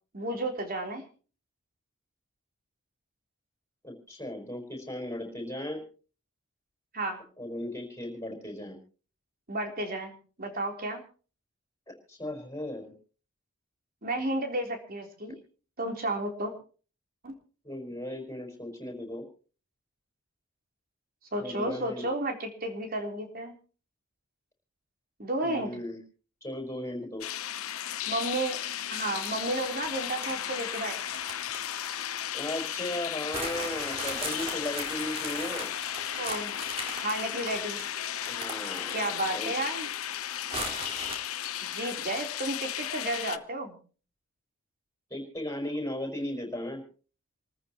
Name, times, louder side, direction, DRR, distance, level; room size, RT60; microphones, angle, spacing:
voice 1, 0.1-1.0 6.9-7.2 9.5-11.0 14.0-15.4 15.8-16.5 17.2-17.3 21.3-23.5 25.2-25.8 28.1-28.6 28.9-31.0 36.2-36.6 37.0-37.8 38.9-39.9 41.7-43.8, right 1 dB, 45° right, 4 dB, 3.6 m, -32 dB
voice 2, 3.8-5.8 7.4-8.8 11.9-12.9 17.6-19.3 21.4-22.1 25.4-26.0 26.4-27.3 32.3-35.7 38.3-39.0 39.3-39.5 45.1-46.8, left 1 dB, 15° left, 2 dB, 5.0 m, -36 dB
sound 1, 27.2-43.4, left 11 dB, 80° left, 0.9 m, -35 dB
sound 2, 29.0-32.7 33.3-39.4 39.7-39.8 40.5-41.2, right 2 dB, 30° right, 4.6 m, -39 dB
28.0 x 14.0 x 3.0 m, 0.39 s
head